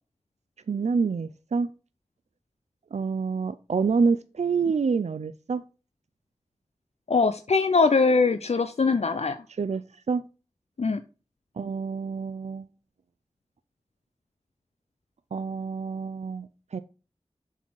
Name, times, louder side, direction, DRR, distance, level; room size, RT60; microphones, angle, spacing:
voice 1, 0.7-1.7 2.9-5.6 9.6-10.2 11.6-12.7 15.3-16.8, right 5 dB, 75° right, 13 dB, 0.4 m, -27 dB
voice 2, 7.1-9.4 10.8-11.0, left 4 dB, 65° left, 9 dB, 0.5 m, -22 dB
7.3 x 4.1 x 4.6 m, 0.34 s
wide cardioid pair, 45°, 12 cm